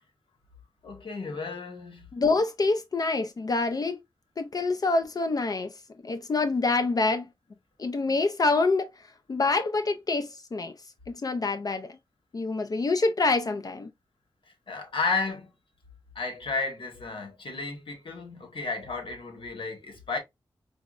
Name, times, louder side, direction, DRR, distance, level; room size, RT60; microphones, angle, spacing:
voice 1, 0.8-2.1 14.7-15.5 16.1-20.2, left 4 dB, 75° left, 1.3 m, -33 dB
voice 2, 2.1-4.0 4.4-5.7 6.0-7.3 7.8-8.9 9.3-10.7 11.1-12.0 12.3-13.9, left 3 dB, 45° left, 0.4 m, -26 dB
4.7 x 2.1 x 2.4 m
wide cardioid pair, 85°, 9 cm